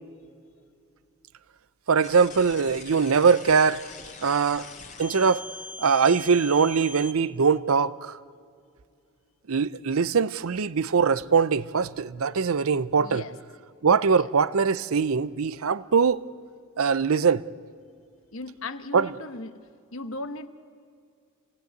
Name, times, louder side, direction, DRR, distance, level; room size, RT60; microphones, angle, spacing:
voice 1, 1.9-3.8 4.2-4.7 5.0-5.4 5.8-8.2 9.5-13.2 13.8-16.2 16.8-17.4 18.9-19.1, right 5 dB, 80° right, 0.6 m, -22 dB
sound 1, 2.0-7.1, left 4 dB, 35° left, 2.3 m, -42 dB
voice 2, 13.0-13.4 14.1-14.3 18.3-19.6 19.9-20.5, left 2 dB, 65° left, 1.1 m, -37 dB
27.5 x 18.0 x 9.3 m
head